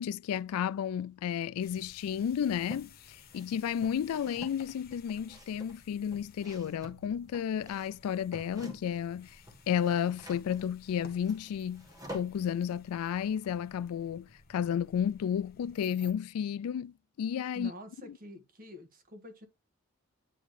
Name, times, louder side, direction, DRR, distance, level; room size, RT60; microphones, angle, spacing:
voice 1, 0.0-9.4 9.7-11.9 12.1-17.7, left 8 dB, 80° left, 0.3 m, -32 dB
sound 1, 1.6-15.8, left 3 dB, 40° left, 1.0 m, -58 dB
sound 2, 2.2-2.9 3.3-9.1 9.3-12.5, equal, 15° right, 1.5 m, -49 dB
sound 3, 11.3-12.8 13.0-13.1 15.7-16.1, left 6 dB, 20° left, 1.6 m, -59 dB
voice 2, 17.5-19.5, left 1 dB, 40° right, 1.7 m, -47 dB
9.4 x 3.6 x 3.2 m
head